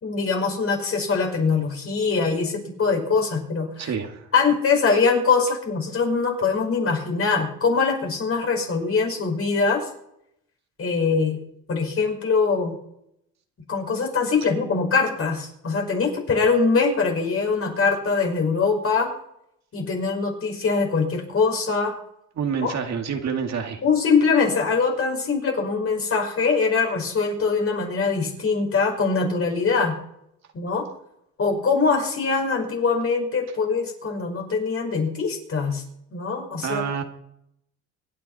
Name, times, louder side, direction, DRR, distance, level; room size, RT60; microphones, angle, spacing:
voice 1, 0.0-3.9 4.3-9.9 10.8-11.4 11.7-12.7 13.7-19.1 19.7-22.0 22.6-22.8 23.8-29.9 30.5-30.9 31.4-35.8 36.1-36.8, left 4 dB, 50° left, 2 dB, 5.7 m, -23 dB
voice 2, 3.8-4.3 22.4-23.8 36.6-37.0, right 6 dB, 65° right, 4 dB, 2.3 m, -27 dB
25.5 x 10.0 x 4.3 m, 0.77 s
cardioid pair, 90°, 30 cm